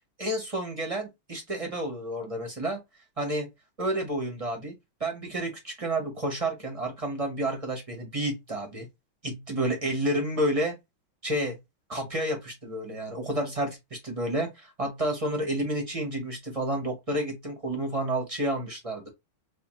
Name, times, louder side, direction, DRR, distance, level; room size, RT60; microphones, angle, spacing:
voice 1, 0.2-2.8 3.2-3.5 3.8-4.7 5.0-8.9 9.2-10.7 11.2-11.6 11.9-19.1, right 1 dB, 35° right, 0.5 m, -30 dB
4.9 x 2.3 x 3.0 m
omnidirectional pair, 2.4 m